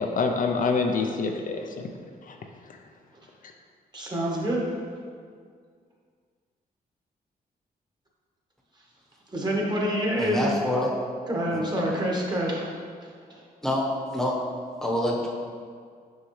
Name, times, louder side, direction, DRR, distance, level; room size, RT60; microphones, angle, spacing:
voice 1, 0.0-1.9 2.2-2.4 2.7-2.8, left 4 dB, 55° left, 3 dB, 0.5 m, -26 dB
voice 2, 3.9-4.6 9.3-10.5 11.3-12.7 13.3-13.4, equal, 25° right, -3 dB, 1.3 m, -26 dB
voice 3, 10.1-10.9 11.5-11.6 13.6-13.9 14.1-14.4 14.8-15.3, left 1 dB, ahead, -3 dB, 1.0 m, -26 dB
6.3 x 5.6 x 3.1 m, 2.1 s
cardioid pair, 105°, 16 cm